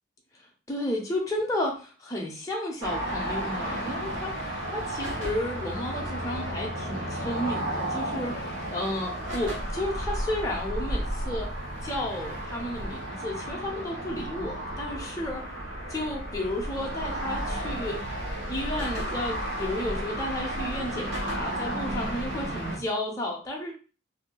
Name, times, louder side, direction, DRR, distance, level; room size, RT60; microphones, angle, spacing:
voice 1, 0.7-4.3 4.7-11.5 11.8-15.5 15.9-18.0 18.5-23.7, left 1 dB, 15° left, -1 dB, 0.6 m, -32 dB
sound 1, 2.8-22.8, right 1 dB, 85° right, 1.0 m, -33 dB
3.2 x 2.6 x 2.2 m, 0.36 s
head